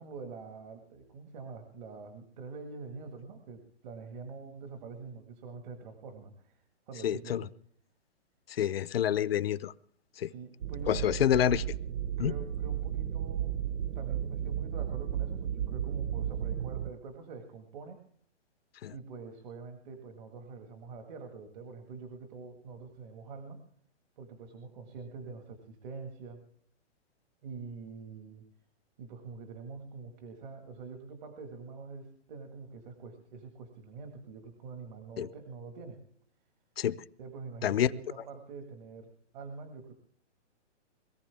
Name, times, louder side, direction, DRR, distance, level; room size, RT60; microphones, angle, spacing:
voice 1, 0.0-7.5 10.2-11.1 12.2-13.7 14.0-18.0 18.9-23.6 24.2-26.4 27.4-28.4 29.0-36.0 37.2-39.9, right 4 dB, 40° right, 5 dB, 1.9 m, -45 dB
voice 2, 7.0-7.5 8.5-9.7 10.2-10.3 10.9-11.6 12.2-12.3 18.8-18.9 35.2-35.3 36.8-37.0 37.6-37.9, left 10 dB, 55° left, 17 dB, 0.7 m, -27 dB
sound 1, 10.6-16.9, right 10 dB, 85° right, 0.8 m, -34 dB
22.0 x 15.0 x 3.5 m, 0.62 s
hypercardioid pair, 160°, 36 cm